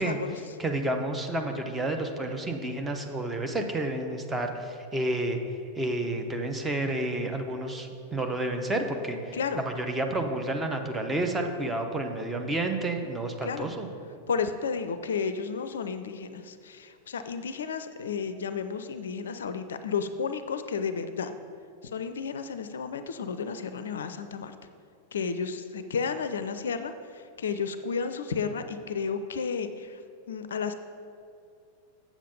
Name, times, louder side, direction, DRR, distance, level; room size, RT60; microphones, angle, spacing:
voice 1, 0.0-0.4 9.3-9.6 13.4-13.7 14.3-21.3 21.9-24.5 25.1-30.0 30.3-30.7, left 5 dB, 65° left, 10 dB, 0.4 m, -32 dB
voice 2, 0.6-5.4 5.8-13.9, right 2 dB, 10° right, 4 dB, 0.9 m, -30 dB
7.4 x 7.2 x 5.2 m, 2.5 s
figure-of-eight pair, 90°, 0 cm